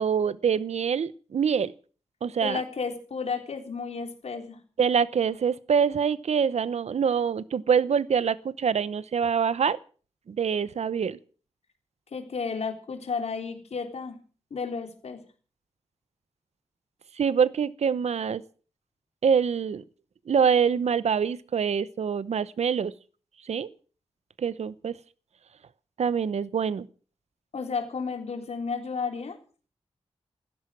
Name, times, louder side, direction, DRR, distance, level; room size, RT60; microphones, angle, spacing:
voice 1, 0.0-1.7 2.2-2.6 4.8-9.8 10.3-11.2 17.2-18.4 19.2-19.8 20.3-22.9 23.5-23.7 24.4-25.0 26.0-26.9, right 7 dB, 80° right, 18 dB, 0.8 m, -25 dB
voice 2, 2.4-4.6 12.1-14.2 14.5-15.2 27.5-29.4, left 5 dB, 75° left, 5 dB, 3.6 m, -32 dB
16.0 x 14.0 x 6.1 m, 0.41 s
wide cardioid pair, 85°, 11 cm